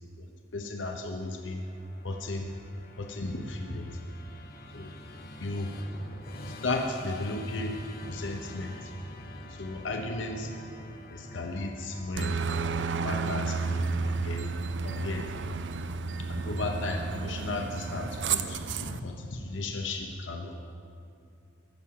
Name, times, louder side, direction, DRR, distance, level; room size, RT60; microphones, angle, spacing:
voice 1, 0.2-1.6 2.0-2.5 3.0-3.9 4.7-4.9 5.4-5.7 6.4-7.7 8.0-8.7 9.6-10.5 11.1-12.3 13.0-14.5 14.8-15.2 16.3-20.6, left 2 dB, 90° left, 3 dB, 0.8 m, -34 dB
Musical instrument, 1.3-16.6, left 1 dB, 55° left, 1.1 m, -47 dB
Aircraft, 12.2-19.0, right 4 dB, 70° right, 0.5 m, -32 dB
15.0 x 5.7 x 8.5 m, 2.6 s
head